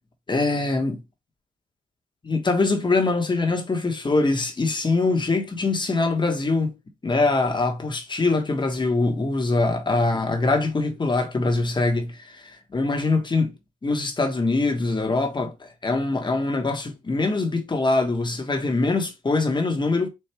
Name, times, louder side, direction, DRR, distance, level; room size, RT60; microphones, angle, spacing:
voice 1, 0.3-1.0 2.2-6.8 7.0-13.5 13.8-20.1, left 3 dB, 30° left, 1.3 m, -23 dB
4.4 x 2.7 x 3.4 m
supercardioid pair, 65°, 16 cm